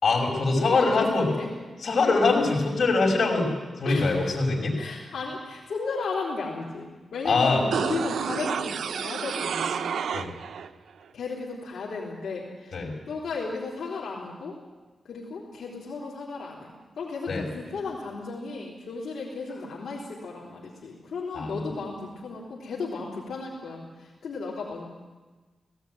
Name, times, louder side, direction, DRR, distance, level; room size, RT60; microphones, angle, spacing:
voice 1, 0.0-1.3 1.8-3.5 3.8-4.8 7.2-7.6 10.1-10.3 12.7-12.9 17.3-17.5 21.3-21.6, left 3 dB, 65° left, -1 dB, 5.5 m, -23 dB
voice 2, 0.5-1.5 3.8-4.3 4.8-9.9 11.1-12.8 13.1-14.6 15.1-24.9, left 4 dB, 90° left, -4 dB, 3.6 m, -34 dB
sound 1, 7.7-10.7 11.0-11.1, right 7 dB, 85° right, 0.8 m, -30 dB
18.0 x 16.5 x 9.3 m, 1.3 s
wide cardioid pair, 125°, 0 cm